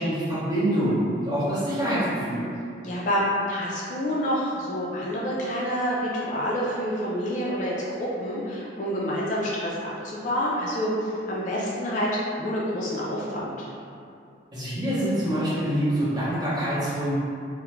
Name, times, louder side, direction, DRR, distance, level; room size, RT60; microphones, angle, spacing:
voice 1, 0.0-2.5 14.5-17.1, equal, 25° right, -12 dB, 0.8 m, -25 dB
voice 2, 2.8-13.7, equal, 40° left, -6 dB, 0.3 m, -28 dB
2.3 x 2.0 x 3.0 m, 2.5 s
head